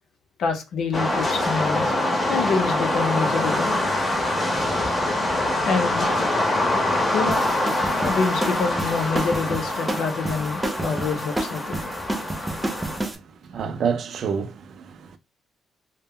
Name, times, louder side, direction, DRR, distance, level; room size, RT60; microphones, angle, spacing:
voice 1, 0.4-1.9 2.3-3.7 5.7-6.1 7.1-7.4 8.0-11.8, left 5 dB, 70° left, 0.6 m, -26 dB
sound 1, 0.9-13.0, left 1 dB, 25° left, 0.7 m, -24 dB
sound 2, 7.3-13.1, right 1 dB, 15° right, 0.6 m, -30 dB
voice 2, 13.4-15.2, right 6 dB, 60° right, 0.4 m, -28 dB
2.1 x 2.1 x 3.5 m
cardioid pair, 90°, 0 cm